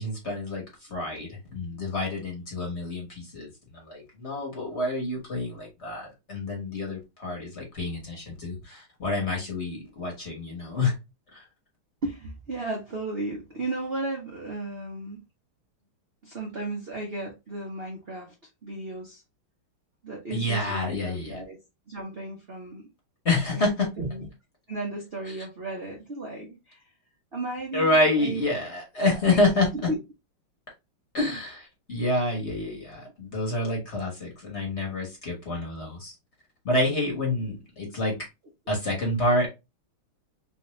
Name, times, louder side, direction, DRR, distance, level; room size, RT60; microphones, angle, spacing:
voice 1, 0.0-11.0 11.3-11.4 20.3-21.4 23.2-23.9 25.3-25.4 27.7-29.7 31.1-36.1 36.6-38.3 38.7-39.5, left 2 dB, 40° left, 1.2 m, -28 dB
voice 2, 12.0-15.2 16.2-18.3 18.6-19.2 20.0-21.6 21.9-22.8 23.5-23.7 24.0-24.3 24.7-26.9 27.3-28.4 29.0-29.4 29.9-30.0 38.7-38.8, right 2 dB, 70° right, 0.5 m, -34 dB
3.4 x 2.7 x 3.0 m
omnidirectional pair, 2.4 m